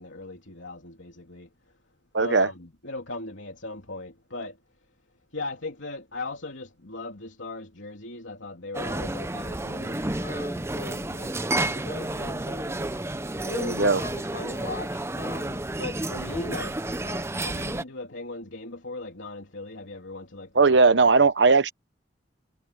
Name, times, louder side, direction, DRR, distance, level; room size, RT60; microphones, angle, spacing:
voice 1, 0.0-1.7 2.2-4.6 5.3-12.9 13.4-20.8 21.2-21.3, left 2 dB, 90° left, 3.1 m, -39 dB
voice 2, 2.1-2.5 13.6-14.0 20.5-21.7, right 4 dB, 65° right, 1.0 m, -18 dB
sound 1, 8.7-17.8, right 1 dB, 15° right, 0.8 m, -31 dB
head